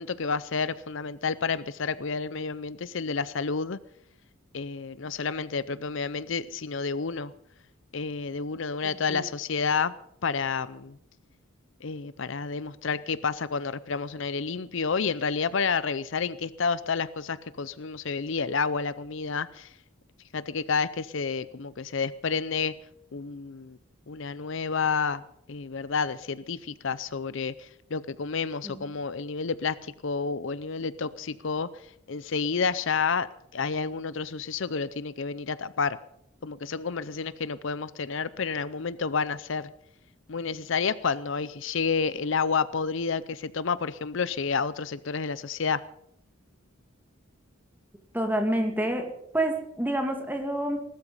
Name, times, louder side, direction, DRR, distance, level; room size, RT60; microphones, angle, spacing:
voice 1, 0.0-3.8 4.5-7.3 7.9-9.9 10.2-11.0 11.8-19.7 20.3-22.7 23.1-23.8 24.1-25.2 25.5-31.7 32.1-33.3 33.5-36.0 36.4-39.7 40.3-45.8, left 5 dB, 60° left, 16 dB, 0.6 m, -30 dB
voice 2, 48.1-49.1 49.3-50.8, right 1 dB, 10° right, 4 dB, 2.4 m, -28 dB
19.5 x 13.0 x 5.5 m, 0.75 s
head